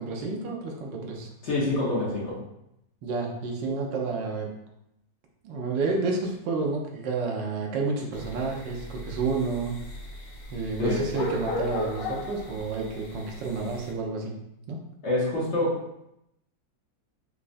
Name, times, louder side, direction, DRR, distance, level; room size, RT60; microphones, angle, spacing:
voice 1, 0.0-1.3 3.0-4.5 5.4-9.8 10.5-14.3 14.7-14.8, right 4 dB, 90° right, 0 dB, 1.4 m, -30 dB
voice 2, 1.4-2.4 10.8-11.1 15.0-15.8, left 2 dB, 45° left, -7 dB, 1.1 m, -26 dB
sound 1, 8.1-13.9, left 2 dB, 90° left, 1.4 m, -37 dB
5.1 x 2.3 x 2.5 m, 0.83 s
omnidirectional pair, 1.9 m